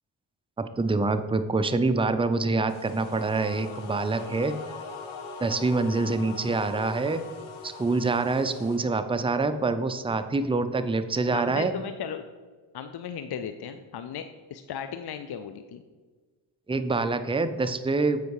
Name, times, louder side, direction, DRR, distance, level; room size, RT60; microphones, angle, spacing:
voice 1, 0.6-4.5 5.4-7.2 7.6-11.7 16.7-18.2, right 3 dB, 10° right, 9 dB, 0.6 m, -26 dB
sound 1, 2.7-8.8, left 4 dB, 75° left, 1.2 m, -41 dB
voice 2, 11.3-12.2 12.7-15.8, left 8 dB, 55° left, 9 dB, 0.6 m, -36 dB
7.9 x 4.7 x 4.8 m, 1.4 s
supercardioid pair, 45°, 47 cm